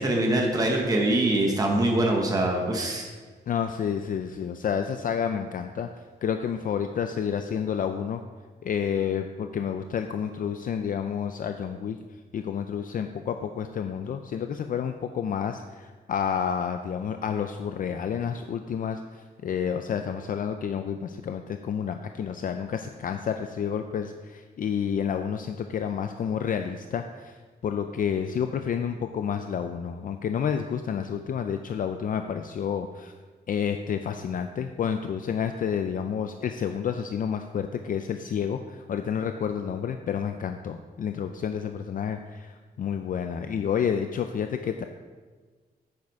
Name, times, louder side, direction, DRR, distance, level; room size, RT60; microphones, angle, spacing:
voice 1, 0.0-3.1, right 1 dB, 20° right, 1 dB, 1.0 m, -23 dB
voice 2, 3.5-5.9 6.2-8.2 8.6-12.0 12.3-33.1 33.5-44.8, left 7 dB, 55° left, 7 dB, 0.4 m, -30 dB
9.3 x 7.4 x 4.7 m, 1.4 s
wide cardioid pair, 170°, 17 cm